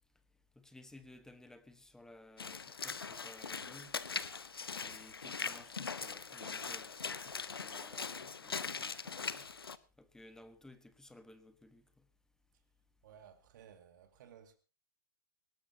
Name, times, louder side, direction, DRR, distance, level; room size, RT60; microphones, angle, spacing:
voice 1, 0.5-3.9 4.8-9.4 10.0-12.0, left 2 dB, 5° left, 1.4 m, -57 dB
Walk footsteps / Splash splatter, 2.4-9.8, left 5 dB, 85° left, 0.9 m, -41 dB
voice 2, 13.0-14.5, right 8 dB, 55° right, 2.2 m, -57 dB
20.0 x 18.0 x 2.9 m
hypercardioid pair, 115°, 12 cm